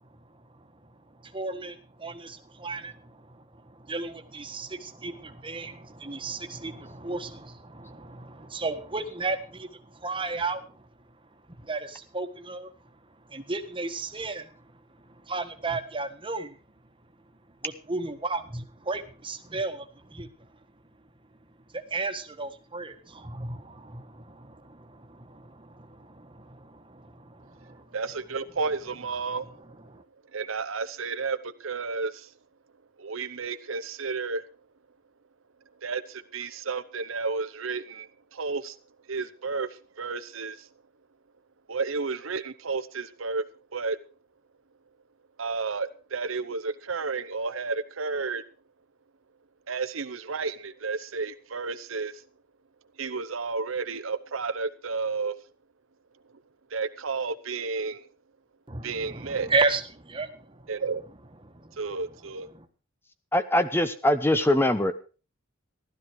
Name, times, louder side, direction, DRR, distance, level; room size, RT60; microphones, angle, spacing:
voice 1, 0.1-10.9 11.5-16.6 17.6-20.5 21.7-27.8 29.3-29.4 29.9-30.0 58.7-60.7 61.4-61.8 62.5-62.7, right 3 dB, 25° right, 1.5 m, -34 dB
voice 2, 27.9-29.5 30.3-32.3 33.0-34.4 35.8-38.8 39.1-39.7 40.0-40.7 41.7-43.4 43.7-44.0 45.4-48.4 49.7-52.2 53.0-55.3 56.7-58.0 58.8-59.5 60.7-61.0 61.8-62.5, right 4 dB, 65° right, 0.9 m, -32 dB
voice 3, 63.3-64.9, left 1 dB, 10° left, 0.8 m, -22 dB
15.5 x 12.5 x 4.7 m
head